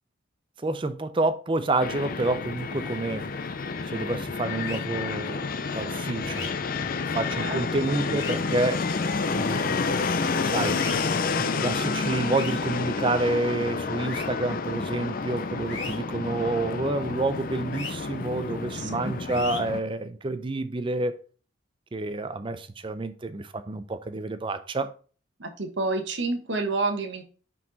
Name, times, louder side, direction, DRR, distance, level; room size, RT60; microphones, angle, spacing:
voice 1, 0.6-3.3 3.9-8.8 9.3-9.9 10.4-10.8 11.4-21.2 21.9-24.9, right 2 dB, 25° right, 0.5 m, -29 dB
Fixed-wing aircraft airplane, 1.8-19.8, left 4 dB, 45° left, 0.5 m, -29 dB
sound 1, 4.6-4.8 6.3-6.5 8.1-8.4 10.8-10.9 12.3-12.6 14.0-14.2 15.7-16.0 17.7-17.9 19.3-19.6, left 4 dB, 65° left, 1.9 m, -36 dB
voice 2, 7.4-8.0 18.7-19.1 25.4-27.2, right 3 dB, 60° right, 1.2 m, -29 dB
5.5 x 5.1 x 3.9 m
head